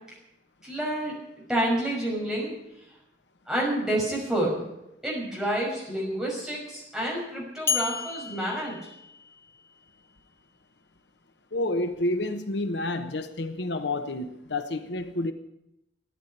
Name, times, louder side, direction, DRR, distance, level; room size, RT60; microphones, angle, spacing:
voice 1, 0.6-1.1 1.5-2.5 3.5-4.5 5.0-8.8, right 1 dB, 5° right, -3 dB, 5.9 m, -28 dB
sound 1, 7.7-9.7, left 6 dB, 15° left, 0.6 m, -32 dB
voice 2, 11.5-15.3, left 2 dB, 80° left, 9 dB, 1.1 m, -29 dB
14.5 x 9.5 x 10.0 m, 0.87 s
head